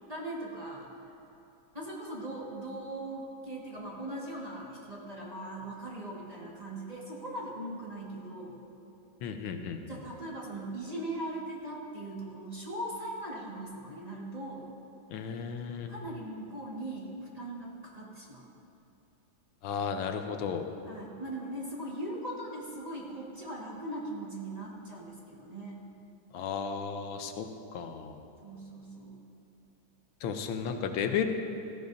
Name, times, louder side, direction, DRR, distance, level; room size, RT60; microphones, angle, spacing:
voice 1, 0.1-0.9 1.7-8.6 9.9-14.7 15.9-18.5 20.9-25.8 28.4-29.2, right 1 dB, 20° right, -4 dB, 1.6 m, -40 dB
voice 2, 9.2-9.8 15.1-15.9 19.6-20.7 26.3-27.5 27.7-28.2 30.2-31.3, left 7 dB, 90° left, 6 dB, 1.6 m, -34 dB
16.5 x 14.5 x 2.7 m, 2.9 s
omnidirectional pair, 2.1 m